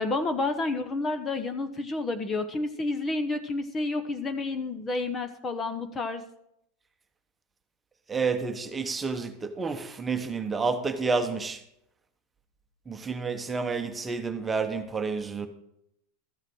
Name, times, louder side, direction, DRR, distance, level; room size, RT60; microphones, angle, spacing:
voice 1, 0.0-6.2, left 3 dB, 20° left, 1.0 m, -30 dB
voice 2, 8.1-11.6 12.9-15.5, right 4 dB, 15° right, 1.2 m, -30 dB
13.5 x 6.5 x 6.2 m
supercardioid pair, 125°, 0 cm